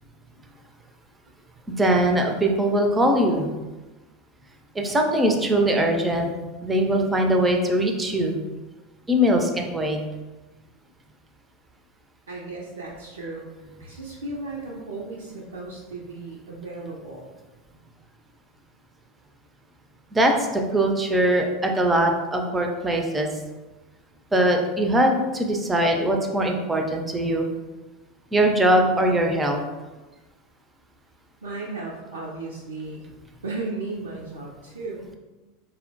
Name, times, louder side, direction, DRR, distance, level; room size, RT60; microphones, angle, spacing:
voice 1, 1.7-3.5 4.8-6.3 6.6-8.4 9.1-10.0 20.1-23.3 24.3-27.5 28.3-29.6, right 1 dB, 15° right, 3 dB, 0.4 m, -21 dB
voice 2, 12.3-17.3 31.4-33.1 33.4-35.1, right 3 dB, 75° right, -4 dB, 0.4 m, -35 dB
4.2 x 2.0 x 2.6 m, 1.2 s
figure-of-eight pair, 80°, 0 cm